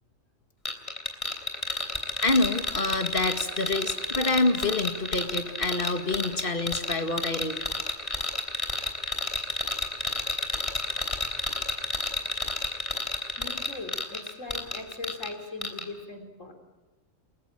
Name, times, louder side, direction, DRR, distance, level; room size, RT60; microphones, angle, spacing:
sound 1, 0.6-15.3 15.6-15.8, left 2 dB, 25° left, 3.4 m, -31 dB
voice 1, 2.2-7.6, left 2 dB, 45° left, 6 dB, 2.2 m, -27 dB
voice 2, 13.4-16.5, left 3 dB, 75° left, 4 dB, 3.9 m, -40 dB
29.5 x 22.0 x 8.9 m, 1.2 s
omnidirectional pair, 1.3 m